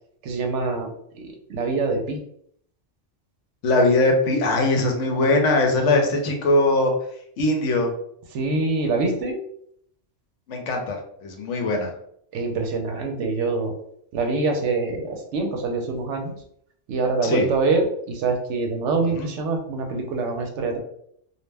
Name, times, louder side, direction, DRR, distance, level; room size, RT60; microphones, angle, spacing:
voice 1, 0.2-0.9 1.1-2.2 8.3-9.4 12.3-13.7 14.1-16.3 16.9-20.8, right 3 dB, 75° right, 3 dB, 0.9 m, -25 dB
voice 2, 3.6-6.9 7.4-7.9 10.5-11.9 17.2-17.5 19.2-19.3, left 2 dB, 75° left, 2 dB, 0.9 m, -21 dB
2.4 x 2.1 x 3.2 m, 0.68 s
omnidirectional pair, 1.3 m